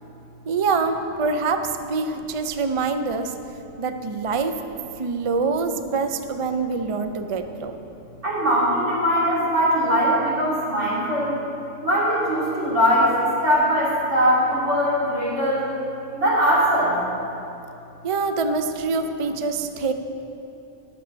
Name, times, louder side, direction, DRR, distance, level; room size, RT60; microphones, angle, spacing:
voice 1, 0.5-3.3 3.8-4.6 5.0-7.8 18.0-19.9, right 4 dB, 50° right, 7 dB, 0.4 m, -25 dB
voice 2, 8.2-11.3 11.8-15.6 16.1-16.9, equal, 70° right, -8 dB, 3.4 m, -21 dB
11.5 x 7.1 x 6.2 m, 2.8 s
omnidirectional pair, 1.3 m